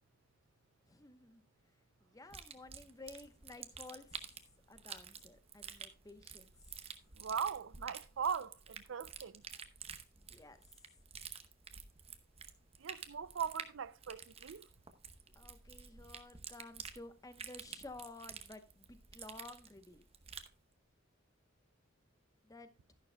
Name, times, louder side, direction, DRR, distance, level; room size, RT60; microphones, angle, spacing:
voice 1, 0.9-1.4 2.0-4.3 4.7-6.5 10.2-10.6 15.3-20.0 22.4-22.7, left 2 dB, 20° left, 0.9 m, -53 dB
sound 1, 2.3-20.5, right 7 dB, 30° right, 0.8 m, -50 dB
voice 2, 7.2-9.4 12.8-14.7, right 7 dB, 75° right, 0.5 m, -40 dB
12.0 x 11.0 x 2.2 m
head